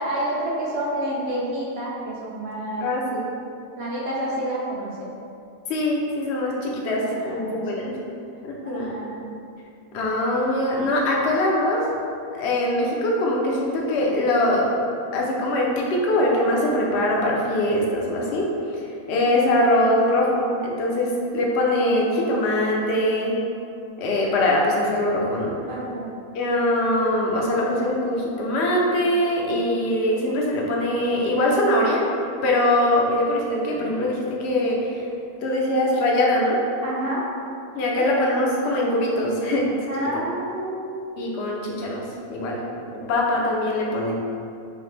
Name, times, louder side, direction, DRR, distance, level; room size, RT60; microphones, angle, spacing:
voice 1, 0.0-3.0 3.8-5.1 6.9-7.9 8.3-9.3 25.7-26.2 36.8-37.2 37.9-38.0 39.9-41.4, right 1 dB, 65° right, -5 dB, 0.6 m, -29 dB
voice 2, 2.8-3.2 5.7-8.0 8.4-8.9 9.9-11.9 12.3-14.7 15.1-18.5 18.7-18.8 19.1-23.3 24.0-25.5 26.3-32.0 32.4-35.0 35.4-36.6 37.7-39.7 40.1-40.2 41.2-42.0 42.3-42.6 42.9-44.1, left 1 dB, 60° left, -2 dB, 0.8 m, -22 dB
5.6 x 2.1 x 3.2 m, 2.6 s
omnidirectional pair, 1.6 m